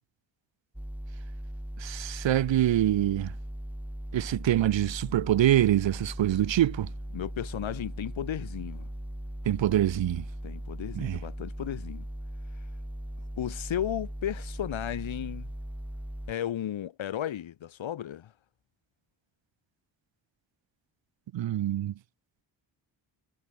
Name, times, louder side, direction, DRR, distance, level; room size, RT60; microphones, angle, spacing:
sound 1, 0.7-16.3, equal, 5° right, 4.7 m, -39 dB
voice 1, 1.8-3.3 4.1-6.9 9.5-10.2 10.9-11.2 21.3-21.9, right 12 dB, 75° right, 0.9 m, -25 dB
voice 2, 7.1-8.9 10.4-12.0 13.4-15.5 16.3-18.3, left 11 dB, 85° left, 2.0 m, -34 dB
wide cardioid pair, 175°, 45 cm